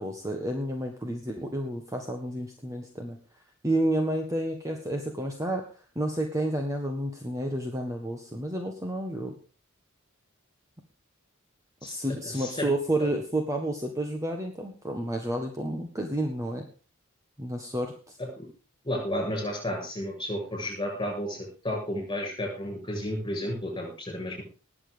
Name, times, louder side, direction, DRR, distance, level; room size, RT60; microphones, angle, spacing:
voice 1, 0.0-3.2 3.6-5.7 5.9-9.4 11.8-16.7 17.4-18.2, right 1 dB, 15° right, 3 dB, 1.6 m, -30 dB
voice 2, 12.2-12.7 18.4-18.5 18.8-24.4, left 1 dB, 20° left, 2 dB, 7.9 m, -32 dB
20.0 x 7.5 x 5.2 m, 0.36 s
head